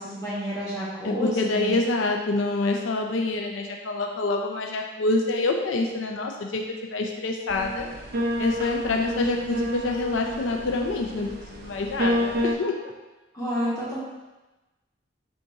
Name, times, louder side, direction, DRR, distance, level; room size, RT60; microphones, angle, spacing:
voice 1, 0.0-1.7 13.3-14.0, equal, 20° left, -8 dB, 1.3 m, -30 dB
voice 2, 1.0-7.9 8.4-12.9, left 2 dB, 90° left, 2 dB, 0.4 m, -26 dB
sound 1, 7.5-12.5, left 1 dB, 50° right, 0.5 m, -29 dB
3.8 x 2.6 x 4.6 m, 1.1 s
head